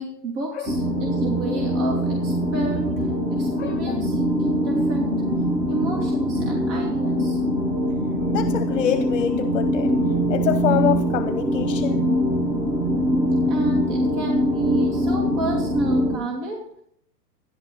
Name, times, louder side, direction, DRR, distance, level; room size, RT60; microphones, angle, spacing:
voice 1, 0.0-2.8 3.3-5.3 5.7-7.4 13.5-16.6, right 2 dB, 45° right, -1 dB, 2.9 m, -30 dB
sound 1, 0.7-16.2, equal, 10° right, 0.8 m, -23 dB
voice 2, 3.6-3.9 8.3-9.9 10.3-12.1, left 10 dB, 50° left, 12 dB, 0.8 m, -26 dB
14.0 x 11.0 x 4.0 m, 0.70 s
hypercardioid pair, 120°, 49 cm